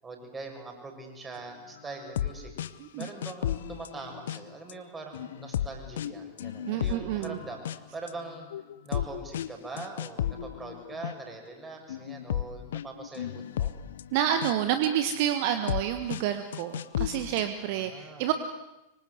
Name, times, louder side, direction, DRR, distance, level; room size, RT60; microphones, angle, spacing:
voice 1, 0.0-2.5 2.9-8.5 8.8-13.7 17.7-18.2, right 3 dB, 15° right, 3 dB, 6.8 m, -42 dB
sound 1, 1.9-2.3 2.6-2.7 3.0-4.7 5.1-7.8 8.1-11.1 11.9-14.9 15.4-15.8 16.1-16.2 16.5-17.5, left 11 dB, 60° left, 0.9 m, -34 dB
voice 2, 6.6-7.4 14.1-18.3, right 10 dB, 50° right, 9 dB, 1.6 m, -29 dB
25.0 x 24.5 x 8.2 m, 0.99 s
figure-of-eight pair, 90°, 0 cm